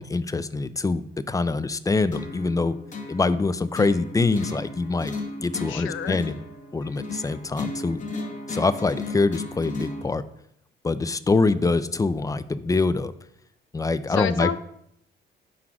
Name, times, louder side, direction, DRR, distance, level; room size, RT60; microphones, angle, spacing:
voice 1, 0.0-2.8 3.1-5.1 5.4-6.4 6.7-8.0 8.5-10.2 10.8-13.1 13.7-14.5, left 3 dB, 15° left, 14 dB, 0.3 m, -24 dB
sound 1, 2.1-10.1, left 3 dB, 40° left, 1.1 m, -35 dB
voice 2, 5.7-6.2 14.1-14.6, left 8 dB, 80° left, 13 dB, 0.5 m, -28 dB
4.9 x 3.9 x 5.8 m, 0.73 s
cardioid pair, 90°, 20 cm